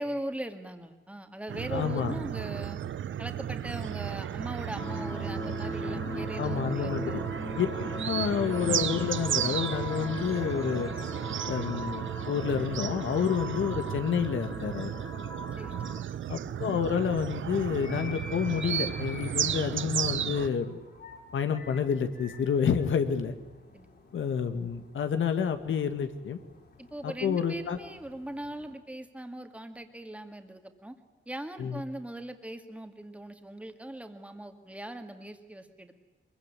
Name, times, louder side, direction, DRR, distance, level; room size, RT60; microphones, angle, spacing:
voice 1, 0.0-2.8 3.2-7.2 15.6-15.9 23.7-23.9 26.8-30.9 31.3-35.9, right 1 dB, 5° right, 6 dB, 2.2 m, -40 dB
sound 1, 1.5-20.5, right 10 dB, 80° right, 0.8 m, -34 dB
voice 2, 1.7-2.2 6.4-7.2 7.6-7.7 8.0-10.9 11.5-14.9 16.3-20.8 21.3-23.3 24.1-26.4 27.0-27.8 31.6-31.8, left 7 dB, 90° left, 8 dB, 1.9 m, -29 dB
sound 2, 4.8-16.0, left 1 dB, 15° left, 1.5 m, -40 dB
sound 3, 14.8-28.8, left 3 dB, 60° left, 5.8 m, -51 dB
24.5 x 22.5 x 10.0 m, 1.1 s
wide cardioid pair, 170°, 20 cm